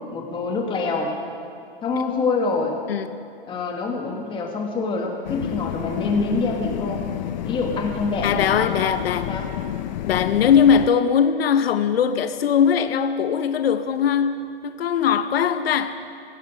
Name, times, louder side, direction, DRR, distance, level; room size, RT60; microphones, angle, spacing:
voice 1, 0.1-1.1 1.8-2.8 3.5-7.0 7.4-8.9 9.3-9.5, left 4 dB, 15° left, 1.6 m, -25 dB
sound 1, 5.2-10.9, left 12 dB, 50° left, 0.5 m, -30 dB
voice 2, 8.2-9.3 10.1-16.0, left 7 dB, 85° left, 0.7 m, -20 dB
16.0 x 11.5 x 5.0 m
hypercardioid pair, 145°, 29 cm